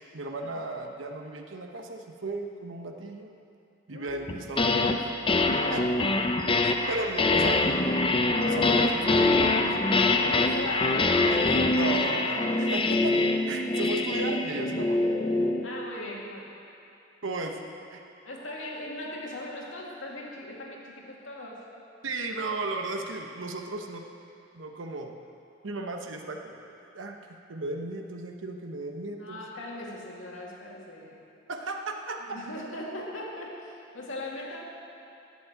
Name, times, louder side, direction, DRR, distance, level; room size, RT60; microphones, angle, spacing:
voice 1, 0.1-3.3 3.9-5.0 5.7-5.8 6.6-7.7 8.4-9.7 10.2-10.7 11.8-13.2 13.5-15.0 17.2-17.6 17.9-18.0 22.0-24.0 24.5-25.1 25.6-27.2 27.5-29.4 31.5-32.2, right 2 dB, 85° right, 3 dB, 1.0 m, -35 dB
sound 1, 4.3-5.0 5.3-15.7, left 2 dB, 30° left, 0.6 m, -24 dB
voice 2, 5.6-5.9 10.3-11.5 15.6-16.5 18.2-21.6 29.2-31.2 32.3-34.6, left 1 dB, 80° left, -3 dB, 2.4 m, -39 dB
11.5 x 7.4 x 8.8 m, 2.8 s
head